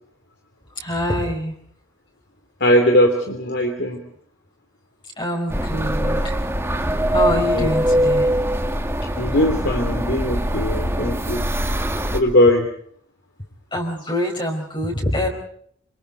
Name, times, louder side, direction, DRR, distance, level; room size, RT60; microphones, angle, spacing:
voice 1, 0.8-1.5 5.2-6.4 7.1-8.3 13.7-15.3, left 1 dB, 25° left, 0 dB, 4.7 m, -25 dB
voice 2, 2.6-4.0 7.5-7.7 9.2-12.7, left 1 dB, 60° left, 3 dB, 3.0 m, -20 dB
sound 1, 5.5-12.2, right 1 dB, 15° right, 2.0 m, -22 dB
27.5 x 27.5 x 4.0 m, 0.64 s
head